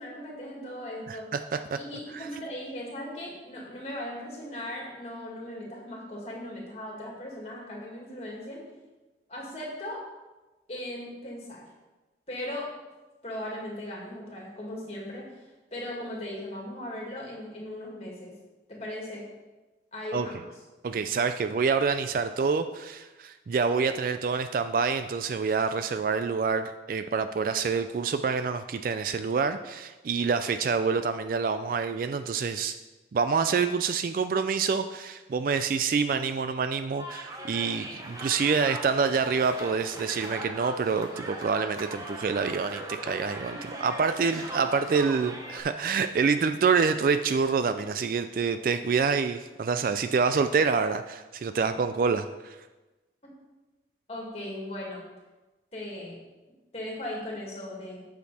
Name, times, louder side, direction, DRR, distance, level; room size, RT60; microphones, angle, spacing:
voice 1, 0.0-1.3 1.7-8.6 9.3-10.0 10.7-11.6 12.3-12.7 13.2-18.3 18.7-19.3 19.9-20.4 43.5-43.9 54.1-55.0 55.7-56.2 56.7-58.0, left 1 dB, 35° left, -2 dB, 2.1 m, -38 dB
voice 2, 1.1-1.4 1.7-1.8 2.1-2.3 20.1-20.3 20.8-32.8 33.1-52.6, right 5 dB, 50° right, 10 dB, 0.3 m, -27 dB
sound 1, 37.0-45.6, right 1 dB, 20° right, 0.9 m, -39 dB
8.2 x 6.4 x 4.2 m, 1.1 s
head